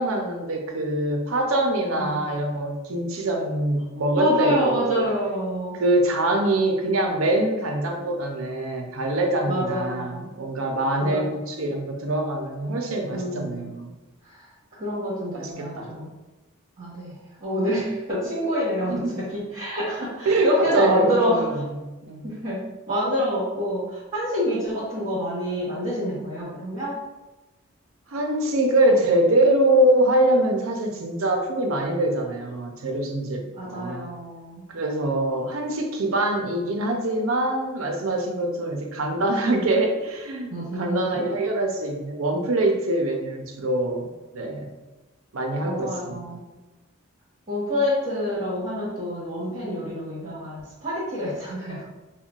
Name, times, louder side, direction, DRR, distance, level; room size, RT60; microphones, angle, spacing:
voice 1, 0.0-5.1 5.7-13.9 15.3-15.9 18.9-19.1 20.3-21.8 22.0-22.3 28.1-34.1 34.7-44.7 45.3-46.2, right 1 dB, 70° right, 3 dB, 0.6 m, -24 dB
voice 2, 4.2-5.8 9.5-10.3 11.0-11.2 13.1-13.7 14.3-14.4 14.7-16.1 16.8-18.9 19.3-21.4 22.2-22.6 22.9-26.9 33.6-34.6 40.5-41.2 45.6-46.4 47.5-51.8, equal, 35° right, -11 dB, 1.2 m, -27 dB
5.5 x 2.2 x 2.4 m, 1.1 s
head